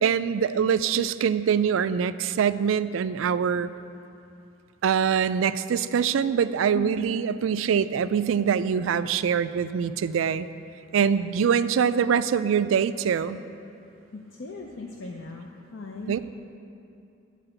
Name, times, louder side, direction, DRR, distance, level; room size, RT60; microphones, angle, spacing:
voice 1, 0.0-3.7 4.8-10.5 10.9-13.4 16.1-16.2, right 7 dB, 85° right, 14 dB, 0.3 m, -24 dB
voice 2, 14.1-16.2, left 2 dB, 70° left, 1 dB, 0.6 m, -38 dB
10.5 x 4.8 x 7.8 m, 2.6 s
head